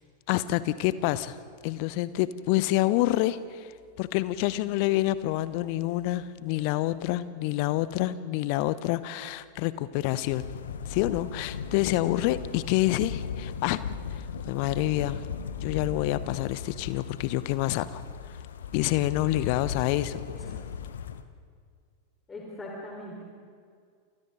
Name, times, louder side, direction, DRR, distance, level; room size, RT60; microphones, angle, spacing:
voice 1, 0.3-1.4 1.6-3.7 4.0-10.4 10.8-15.3 15.6-18.0 18.7-20.2, left 15 dB, 45° left, 16 dB, 0.9 m, -27 dB
sound 1, 10.3-21.2, left 7 dB, 65° left, 1.2 m, -37 dB
voice 2, 22.3-23.3, left 1 dB, 15° left, -3 dB, 4.6 m, -41 dB
30.0 x 28.5 x 4.0 m, 2.2 s
figure-of-eight pair, 90°, 0 cm